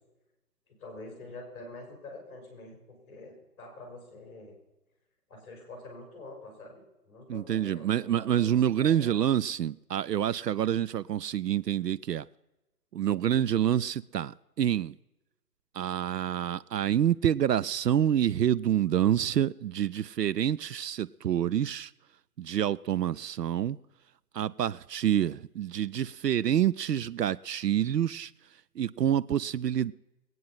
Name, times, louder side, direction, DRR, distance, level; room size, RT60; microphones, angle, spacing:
voice 1, 0.7-4.5 5.3-8.5 8.8-9.2, left 2 dB, 15° left, 4.4 m, -46 dB
voice 2, 7.3-12.3 12.9-14.9 15.7-21.9 22.4-23.8 24.3-28.3 28.8-29.9, right 10 dB, 75° right, 0.5 m, -27 dB
20.5 x 9.3 x 5.7 m
hypercardioid pair, 165°, 49 cm